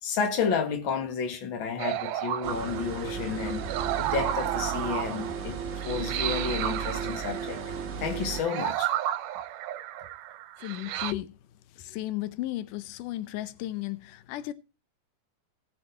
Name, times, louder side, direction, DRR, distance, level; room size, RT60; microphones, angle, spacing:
voice 1, 0.0-3.6 4.0-5.6 5.8-8.9, left 6 dB, 45° left, 2.2 m, -31 dB
sound 1, 1.8-11.1, right 12 dB, 80° right, 2.2 m, -33 dB
sound 2, 2.4-8.4, right 6 dB, 40° right, 1.2 m, -34 dB
voice 2, 10.6-11.4 11.7-14.5, left 15 dB, 85° left, 2.3 m, -34 dB
18.0 x 6.2 x 4.4 m
omnidirectional pair, 3.6 m